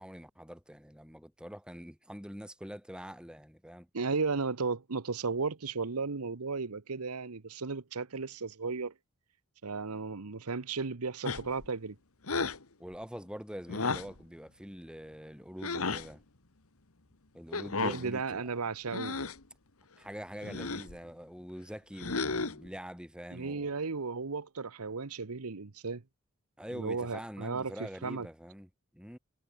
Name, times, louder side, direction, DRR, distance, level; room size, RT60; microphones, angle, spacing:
voice 1, 0.0-3.9 12.8-16.2 17.3-18.5 19.0-19.3 20.0-23.8 26.6-29.2, equal, 5° right, 5.7 m, -45 dB
voice 2, 3.9-8.9 9.6-12.0 17.8-19.1 23.3-26.0 26.7-27.7 28.0-28.3, right 4 dB, 90° right, 1.0 m, -34 dB
sound 1, 11.2-11.7 12.2-12.6 13.7-14.2 15.6-16.1 17.5-18.1 18.9-19.4 20.4-21.0 22.0-22.7, left 4 dB, 75° left, 1.7 m, -33 dB
head